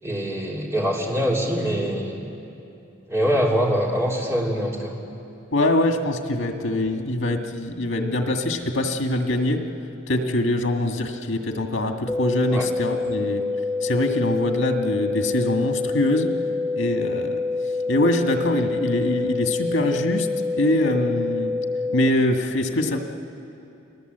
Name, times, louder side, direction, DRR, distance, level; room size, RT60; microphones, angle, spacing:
voice 1, 0.0-2.3 3.1-5.0 12.5-12.7, equal, 15° right, -3 dB, 3.2 m, -24 dB
voice 2, 5.5-9.7 10.1-13.4 13.8-16.3 16.7-17.4 17.9-20.3 20.6-21.5 21.9-23.0, left 1 dB, 85° left, 4 dB, 1.9 m, -23 dB
sound 1, 12.1-22.1, left 3 dB, 5° left, 0.7 m, -26 dB
29.0 x 19.0 x 8.1 m, 2.8 s
head